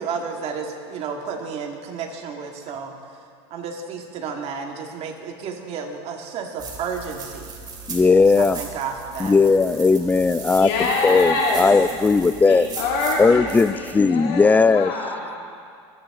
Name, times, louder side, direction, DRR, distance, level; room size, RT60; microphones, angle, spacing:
voice 1, 0.0-2.9 3.5-7.6 8.4-9.4, right 6 dB, 50° right, 2 dB, 2.2 m, -32 dB
sound 1, 6.6-13.9, right 5 dB, 30° right, 3.0 m, -38 dB
voice 2, 7.9-8.6 9.2-10.7 11.0-12.7 13.2-14.9, left 4 dB, 10° left, 15 dB, 0.4 m, -17 dB
voice 3, 10.5-11.8 12.4-15.3, left 3 dB, 75° left, -4 dB, 3.7 m, -25 dB
26.5 x 10.5 x 3.8 m, 2.3 s
supercardioid pair, 110°, 14 cm